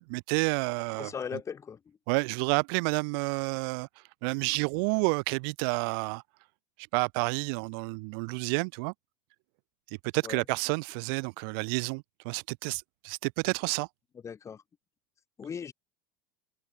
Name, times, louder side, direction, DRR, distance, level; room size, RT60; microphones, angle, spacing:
voice 1, 0.0-1.1 2.1-3.9 4.2-6.2 6.9-8.9 10.1-13.9, right 34 dB, 65° right, 1.2 m, -30 dB
voice 2, 1.0-1.8 10.2-10.4 14.2-14.6 15.4-15.7, left 7 dB, 20° left, 3.5 m, -38 dB
supercardioid pair, 140°, 13 cm